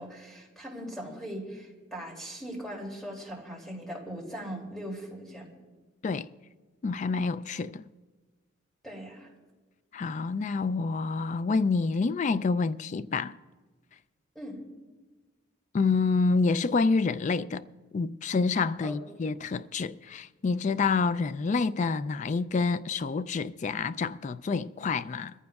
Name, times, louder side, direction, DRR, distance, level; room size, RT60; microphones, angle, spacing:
voice 1, 0.0-5.5 8.8-9.3 14.3-14.6 18.8-19.1, equal, ahead, 2.7 m, -40 dB
voice 2, 6.8-7.8 9.9-13.3 15.7-17.7 17.9-25.3, left 4 dB, 40° left, 0.3 m, -28 dB
22.0 x 14.5 x 2.4 m
head